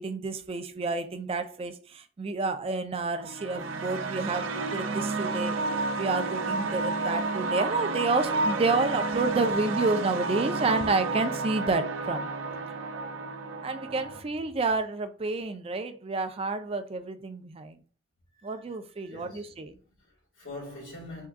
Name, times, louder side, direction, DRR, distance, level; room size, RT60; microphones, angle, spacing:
voice 1, 0.0-5.6 6.0-12.3 13.6-17.8 18.4-19.7, right 3 dB, 30° right, 0.4 m, -29 dB
sound 1, 3.2-14.2, right 3 dB, 90° right, 0.5 m, -31 dB
Walk footsteps, 7.1-7.3 7.7-7.9 8.2-8.4 8.7-8.9 9.3-9.5 9.8-10.0 10.3-10.6 10.9-11.1 11.4-11.6 11.9-12.2 12.5-12.7, right 3 dB, 50° right, 0.8 m, -51 dB
voice 2, 13.8-14.3 18.3-18.6 18.9-21.3, left 2 dB, 85° left, 1.8 m, -45 dB
3.6 x 2.3 x 3.5 m
head